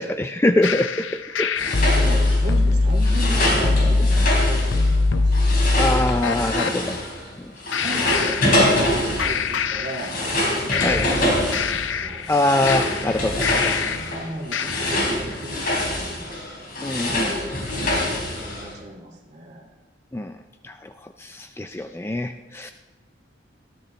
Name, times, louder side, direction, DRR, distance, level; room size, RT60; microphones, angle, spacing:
voice 1, 0.0-1.5 5.8-7.0 10.8-11.0 12.3-13.7 16.8-17.5 20.1-20.3 20.6-20.9 21.2-22.7, left 1 dB, 10° left, 7 dB, 0.3 m, -24 dB
sound 1, 0.6-6.8 7.7-8.9 9.2-10.4 10.7-14.1 14.5-15.2, left 3 dB, 80° left, 0.7 m, -22 dB
sound 2, 1.6-7.3 7.6-18.7, left 1 dB, 45° left, 3.9 m, -25 dB
voice 2, 1.8-5.4 7.8-12.3 13.9-16.4 18.4-19.7, right 1 dB, 35° right, 0 dB, 2.4 m, -35 dB
19.5 x 13.5 x 3.2 m, 1.2 s
head